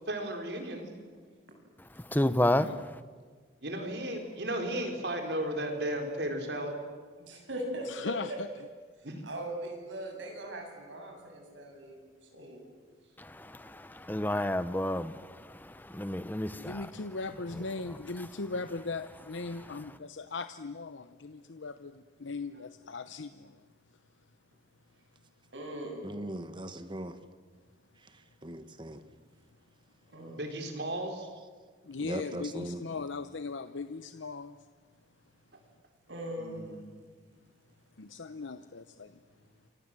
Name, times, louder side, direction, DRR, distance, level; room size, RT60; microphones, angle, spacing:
voice 1, 0.1-0.9 3.6-6.7 9.0-9.2 30.4-31.2 36.4-36.9, right 1 dB, 65° right, 4.5 m, -35 dB
voice 2, 2.1-2.7 13.2-16.9, left 1 dB, 10° left, 0.9 m, -30 dB
voice 3, 7.2-8.4 9.2-12.0 12.3-12.6 25.5-26.1 30.1-30.5 32.2-32.3 36.1-36.7, right 1 dB, 85° right, 7.3 m, -40 dB
voice 4, 7.9-8.5 16.6-23.5 31.8-34.6 38.0-39.1, left 3 dB, 85° left, 0.8 m, -38 dB
voice 5, 26.0-27.2 28.4-29.0 32.0-32.8, right 1 dB, 25° right, 1.4 m, -39 dB
29.0 x 25.5 x 7.7 m
head